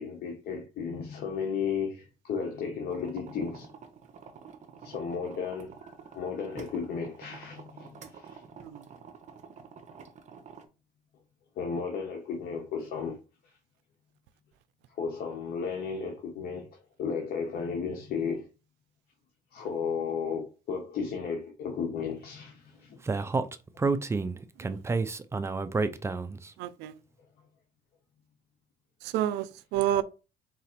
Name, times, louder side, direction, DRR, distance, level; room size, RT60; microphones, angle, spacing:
voice 1, 0.0-3.7 4.8-5.7 6.1-8.4 11.6-13.2 15.0-18.5 19.5-23.2 29.9-30.0, left 6 dB, 65° left, 1.0 m, -34 dB
sound 1, 2.9-10.7, right 6 dB, 45° right, 0.8 m, -49 dB
Speech, 23.1-26.5, right 4 dB, 15° right, 0.3 m, -29 dB
voice 2, 26.6-26.9 29.0-30.0, right 12 dB, 90° right, 0.4 m, -30 dB
4.0 x 2.5 x 4.3 m
cardioid pair, 110°, 17 cm